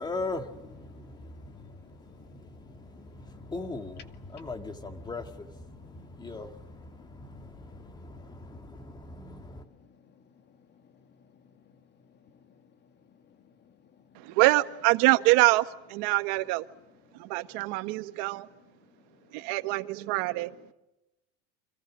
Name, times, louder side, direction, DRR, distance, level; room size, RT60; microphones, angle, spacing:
voice 1, 0.0-9.6, left 3 dB, 15° left, 2.1 m, -40 dB
voice 2, 0.9-3.5 4.2-4.5 5.7-11.7 12.1-12.6 13.1-14.3, left 6 dB, 35° left, 2.1 m, -59 dB
voice 3, 14.1-16.6 17.1-18.5 19.3-20.7, right 20 dB, 65° right, 1.5 m, -25 dB
29.5 x 26.0 x 6.4 m
cardioid pair, 155°, 32 cm